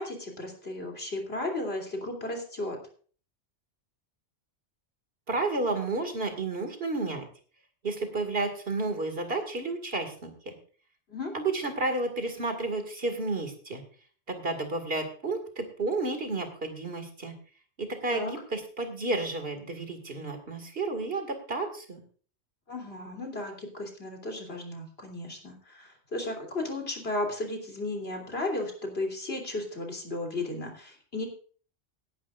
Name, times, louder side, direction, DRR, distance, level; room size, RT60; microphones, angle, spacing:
voice 1, 0.0-2.8 11.1-11.3 18.1-18.3 22.7-31.3, left 2 dB, 65° left, 2 dB, 3.5 m, -34 dB
voice 2, 5.3-7.2 7.8-10.5 11.3-13.8 14.3-17.4 17.8-22.0, right 3 dB, 60° right, 7 dB, 2.4 m, -31 dB
18.0 x 11.0 x 2.5 m, 0.42 s
omnidirectional pair, 1.1 m